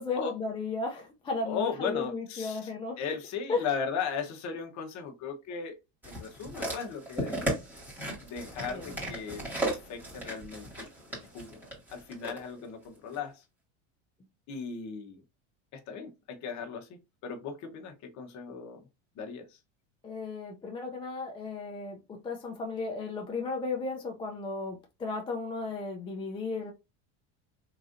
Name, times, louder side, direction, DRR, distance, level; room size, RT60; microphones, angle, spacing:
voice 1, 0.0-3.0 3.5-3.7 8.7-8.9 20.0-26.7, left 3 dB, 15° left, 0.4 m, -34 dB
voice 2, 1.4-2.7 3.0-5.8 6.0-7.5 8.2-10.9 11.3-11.6 11.9-13.4 14.5-15.2 15.7-18.9 19.2-19.6, left 6 dB, 45° left, 1.0 m, -37 dB
sound 1, 6.0-12.4 13.1-13.2, right 1 dB, 5° right, 2.2 m, -36 dB
3.7 x 3.1 x 2.5 m
supercardioid pair, 130°, 40 cm